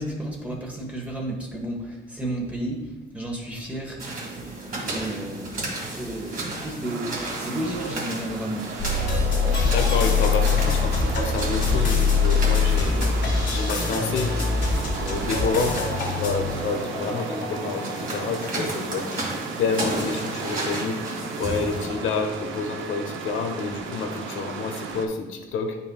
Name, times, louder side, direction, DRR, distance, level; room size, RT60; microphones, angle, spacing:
voice 1, 0.0-2.9 3.1-4.1 4.4-8.7, right 1 dB, 5° right, -2 dB, 1.3 m, -32 dB
sound 1, 4.0-21.9, right 2 dB, 45° right, 2.2 m, -34 dB
sound 2, 6.8-25.1, right 5 dB, 80° right, 0.8 m, -36 dB
sound 3, 8.8-18.9, left 4 dB, 55° left, 2.2 m, -24 dB
voice 2, 9.5-13.1 13.5-14.3 15.0-15.8 16.1-19.1 19.6-21.0 21.4-25.8, left 4 dB, 80° left, 4 dB, 1.0 m, -28 dB
9.1 x 5.4 x 2.4 m, 1.2 s
cardioid pair, 90°, 20 cm